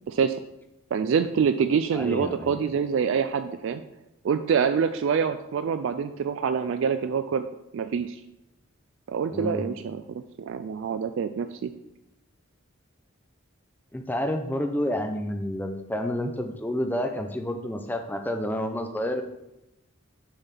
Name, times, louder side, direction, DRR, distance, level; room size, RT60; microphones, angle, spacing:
voice 1, 0.9-3.8 4.2-7.5 7.7-8.2 9.1-11.7, right 6 dB, 65° right, 10 dB, 0.3 m, -26 dB
voice 2, 1.9-2.7 9.3-9.7 13.9-19.2, left 1 dB, 10° left, 4 dB, 0.5 m, -29 dB
7.1 x 3.5 x 5.8 m, 0.88 s
head